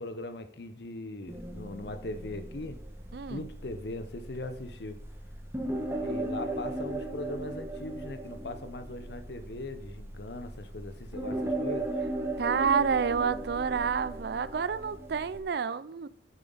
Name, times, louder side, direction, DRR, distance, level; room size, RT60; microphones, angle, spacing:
voice 1, 0.0-2.8 3.3-5.0 5.9-12.0, left 2 dB, 60° left, 0.8 m, -40 dB
sound 1, 1.3-15.4, right 1 dB, 15° right, 1.2 m, -37 dB
voice 2, 3.1-3.5 12.4-16.1, right 6 dB, 60° right, 0.4 m, -29 dB
10.0 x 7.2 x 4.0 m
head